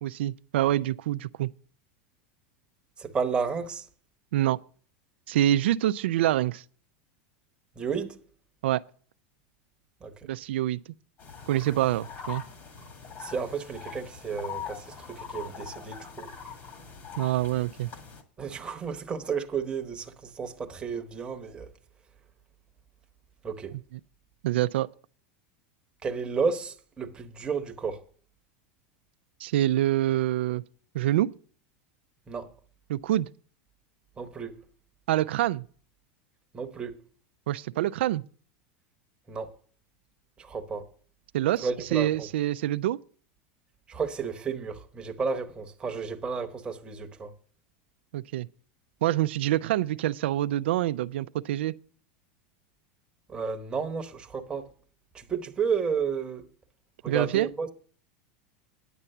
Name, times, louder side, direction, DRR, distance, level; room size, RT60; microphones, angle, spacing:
voice 1, 0.0-1.5 4.3-4.6 5.3-6.6 8.6-8.8 10.2-10.8 11.5-12.4 17.2-17.9 24.4-24.9 29.4-30.6 30.9-31.3 32.9-33.3 35.1-35.6 37.5-38.2 41.3-43.0 48.1-48.5 49.0-51.7 57.1-57.5, right 13 dB, 90° right, 0.4 m, -26 dB
voice 2, 3.0-3.8 7.8-8.2 10.0-10.1 13.2-16.3 18.4-21.7 23.4-23.8 26.0-28.0 32.3-32.5 34.2-34.6 36.5-37.0 39.3-39.5 40.4-40.8 41.6-42.3 43.9-47.3 53.3-54.7 55.1-56.5 57.0-57.7, right 5 dB, 15° right, 1.0 m, -32 dB
sound 1, 11.2-18.2, left 7 dB, 40° left, 2.0 m, -42 dB
10.0 x 7.2 x 6.7 m
supercardioid pair, 150°, 6 cm